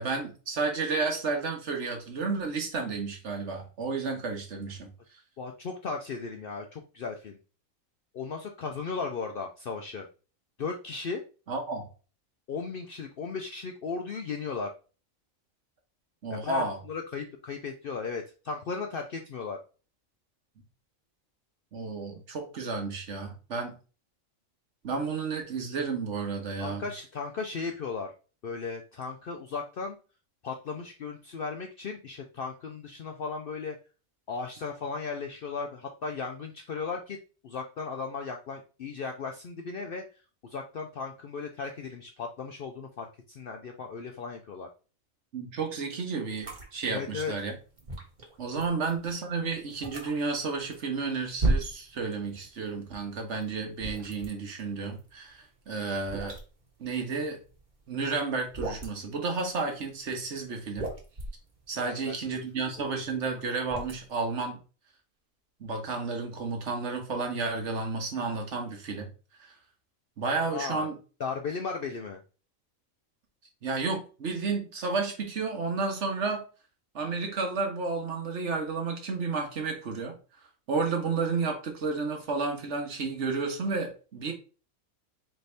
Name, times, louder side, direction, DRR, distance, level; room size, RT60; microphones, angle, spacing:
voice 1, 0.0-4.9 11.5-11.9 16.2-16.8 21.7-23.8 24.8-26.8 45.3-47.5 48.4-56.4 56.8-57.4 57.9-60.9 61.7-64.6 65.6-69.1 69.4-69.5 70.2-70.9 73.6-76.4 76.9-80.2 80.7-84.3, right 4 dB, 60° right, 3 dB, 1.3 m, -32 dB
voice 2, 5.4-7.4 8.1-10.1 10.6-11.2 12.5-14.7 16.3-19.6 26.6-28.1 28.4-30.0 30.4-33.8 34.3-37.2 37.4-44.7 46.9-47.3 48.5-48.6 61.8-62.4 62.8-62.9 70.5-70.9 71.2-72.2, left 4 dB, 60° left, 3 dB, 0.6 m, -36 dB
sound 1, 46.4-52.6 52.8-57.9 58.2-59.1 59.7-60.2 60.5-64.3, right 2 dB, 35° right, 1.2 m, -35 dB
4.1 x 3.4 x 3.3 m, 0.35 s
omnidirectional pair, 1.4 m